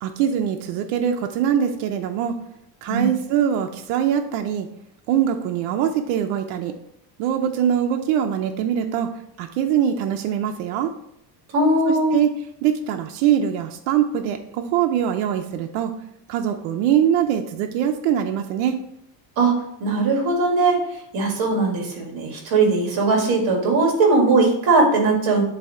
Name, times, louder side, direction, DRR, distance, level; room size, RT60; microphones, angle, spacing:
voice 1, 0.0-2.4 2.8-4.7 5.1-6.7 7.2-9.1 9.4-10.9 11.9-12.3 12.6-16.0 16.3-18.8, right 9 dB, 85° right, 4 dB, 0.7 m, -22 dB
voice 2, 11.5-12.2 19.4-25.4, right 3 dB, 50° right, 0 dB, 2.1 m, -19 dB
7.5 x 2.8 x 5.7 m, 0.76 s
cardioid pair, 160°, 47 cm